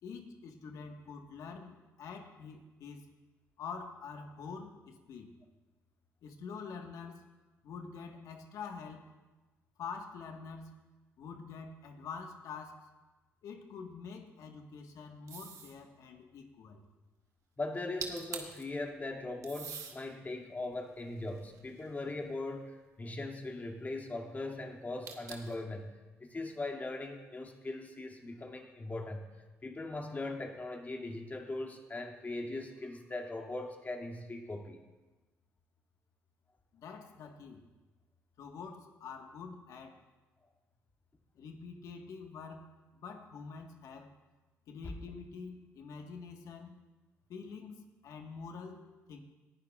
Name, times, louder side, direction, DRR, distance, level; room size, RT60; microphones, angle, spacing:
voice 1, 0.0-3.1 3.6-5.3 6.2-7.2 7.6-9.1 9.8-10.8 11.2-12.9 13.4-16.8 36.7-37.6 38.4-40.0 41.3-44.1 44.7-46.8 47.3-49.2, left 5 dB, 70° left, 3 dB, 1.5 m, -46 dB
sound 1, 15.3-15.8 17.7-17.8 18.0-18.6 19.4-20.0 20.6-22.1 25.1-25.6, right 7 dB, 60° right, 1.5 m, -44 dB
voice 2, 17.6-29.3 29.6-34.8, left 2 dB, 30° left, 1 dB, 2.4 m, -40 dB
18.5 x 11.5 x 2.5 m, 1.2 s
supercardioid pair, 60°, 6 cm